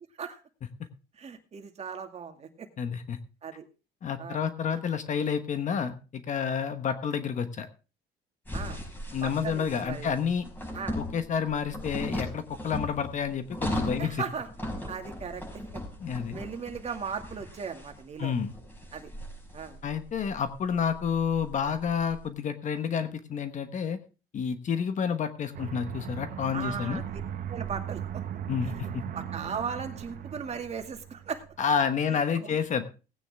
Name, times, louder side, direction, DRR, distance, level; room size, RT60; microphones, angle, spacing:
voice 1, 1.2-2.7 3.4-3.7 4.2-4.5 8.5-8.8 9.2-10.1 10.7-11.0 14.0-14.5 14.9-15.4 15.7-15.8 16.3-18.4 18.9-19.1 19.5-19.8 26.5-27.0 27.5-28.2 28.6-31.4 32.3-32.6, right 6 dB, 40° right, 5 dB, 2.2 m, -37 dB
voice 2, 2.8-3.2 4.0-7.7 9.1-10.4 11.0-14.2 16.0-16.4 18.2-18.5 19.8-24.0 24.3-27.0 28.5-29.0 31.6-32.8, left 7 dB, 45° left, 10 dB, 1.2 m, -29 dB
sound 1, 8.5-22.2, left 1 dB, 10° left, 5.8 m, -38 dB
Aircraft, 25.5-31.6, right 9 dB, 55° right, 1.4 m, -38 dB
18.0 x 9.3 x 3.5 m, 0.33 s
cardioid pair, 110°, 17 cm